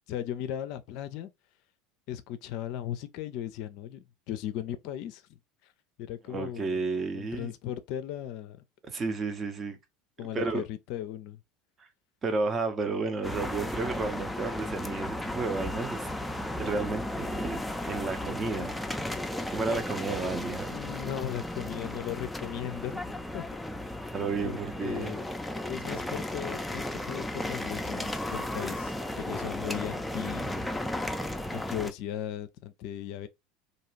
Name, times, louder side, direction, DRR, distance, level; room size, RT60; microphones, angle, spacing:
voice 1, 0.1-1.3 2.1-5.7 6.0-6.9 7.1-8.6 10.2-11.4 20.7-23.5 24.4-25.3 25.7-30.8 31.5-33.3, left 11 dB, 60° left, 0.4 m, -37 dB
voice 2, 6.3-7.5 8.8-9.8 10.3-10.6 11.8-11.9 12.2-16.1 16.6-18.7 19.5-20.7 24.1-25.2, right 4 dB, 30° right, 0.7 m, -32 dB
sound 1, 13.2-31.9, left 1 dB, 5° left, 0.5 m, -35 dB
2.6 x 2.3 x 3.1 m
hypercardioid pair, 75°, 0 cm